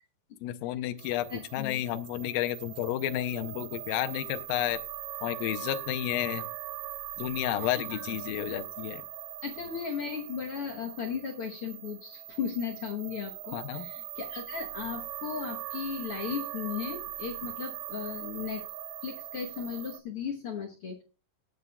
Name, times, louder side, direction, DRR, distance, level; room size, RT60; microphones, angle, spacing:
voice 1, 0.4-4.8 5.2-6.5 7.2-9.0 13.5-13.9, left 13 dB, 85° left, 8 dB, 2.4 m, -31 dB
sound 1, 1.0-20.0, right 13 dB, 80° right, 1.6 m, -41 dB
voice 2, 1.3-1.8 7.6-8.0 9.4-18.6 19.0-21.0, left 7 dB, 65° left, 2 dB, 1.4 m, -36 dB
20.0 x 8.2 x 2.3 m, 0.33 s
omnidirectional pair, 4.0 m